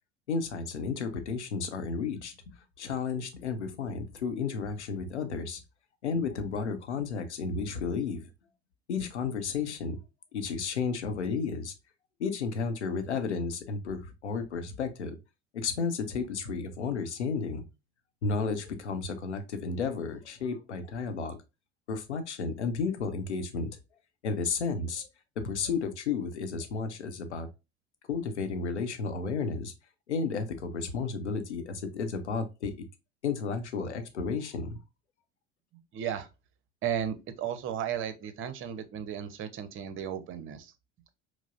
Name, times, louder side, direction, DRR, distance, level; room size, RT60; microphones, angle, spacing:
voice 1, 0.3-2.3 2.8-5.6 6.0-8.2 8.9-10.0 10.3-11.7 12.2-15.2 15.5-17.6 18.2-21.4 21.9-23.7 24.2-25.1 25.4-27.5 28.1-29.7 30.1-32.8 33.2-34.7, left 5 dB, 90° left, 0.6 m, -32 dB
voice 2, 35.7-36.3 36.8-40.7, right 9 dB, 40° right, 0.6 m, -35 dB
4.7 x 2.0 x 2.4 m
hypercardioid pair, 75°, 33 cm